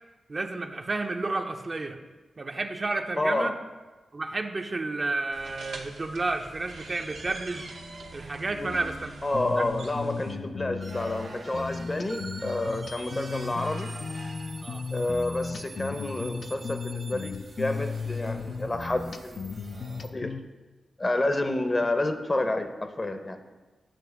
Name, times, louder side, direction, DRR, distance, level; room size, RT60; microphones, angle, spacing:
voice 1, 0.3-2.0 2.4-3.5 4.1-7.7 8.1-9.1 9.6-9.7 14.6-14.8, right 3 dB, 45° right, 5 dB, 0.6 m, -31 dB
voice 2, 3.2-3.5 8.5-8.9 9.2-13.9 14.9-19.6 20.1-20.3 21.0-23.4, left 2 dB, 35° left, 7 dB, 0.7 m, -29 dB
sound 1, 5.3-10.3, right 2 dB, 80° right, 0.8 m, -44 dB
sound 2, 9.3-20.4, left 4 dB, 65° left, 0.4 m, -36 dB
sound 3, 10.8-20.1, right 3 dB, 65° right, 1.1 m, -45 dB
8.6 x 3.0 x 5.9 m, 1.2 s
supercardioid pair, 40°, 0 cm